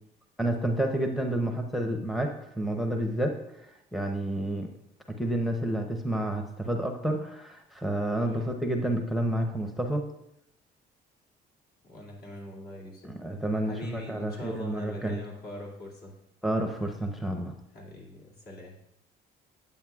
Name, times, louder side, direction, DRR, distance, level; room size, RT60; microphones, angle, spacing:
voice 1, 0.4-3.4 3.9-4.7 5.2-10.1 13.0-15.2 16.4-17.5, right 1 dB, ahead, 3 dB, 0.6 m, -29 dB
voice 2, 8.2-8.6 11.8-13.1 13.6-16.1 17.7-18.8, left 1 dB, 65° left, -3 dB, 2.3 m, -42 dB
9.1 x 8.1 x 2.3 m, 0.80 s
cardioid pair, 110°, 17 cm